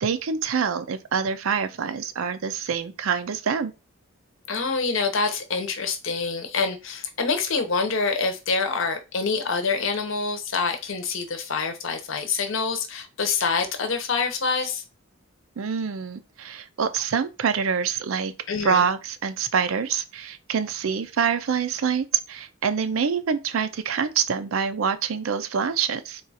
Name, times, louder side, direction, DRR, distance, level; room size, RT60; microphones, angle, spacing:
voice 1, 0.0-3.7 15.6-18.3 18.6-26.2, right 6 dB, 75° right, 0.4 m, -26 dB
voice 2, 4.5-14.8 18.5-18.8, left 4 dB, 65° left, 0.8 m, -26 dB
3.7 x 2.4 x 4.0 m
head